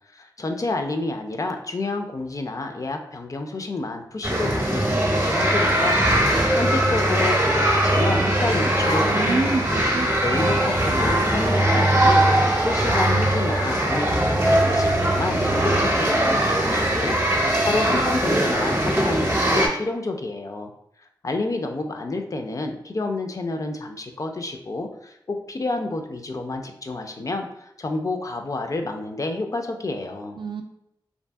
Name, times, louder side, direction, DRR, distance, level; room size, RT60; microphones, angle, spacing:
voice 1, 0.1-6.0 6.3-9.6 10.2-20.7 21.2-30.4, left 2 dB, 40° left, 4 dB, 0.4 m, -29 dB
sound 1, 4.2-19.7, right 1 dB, 30° right, 0.7 m, -20 dB
voice 2, 9.0-10.2 30.4-30.6, right 3 dB, 70° right, 3 dB, 0.4 m, -27 dB
2.6 x 2.6 x 2.2 m, 0.78 s
cardioid pair, 50°, 9 cm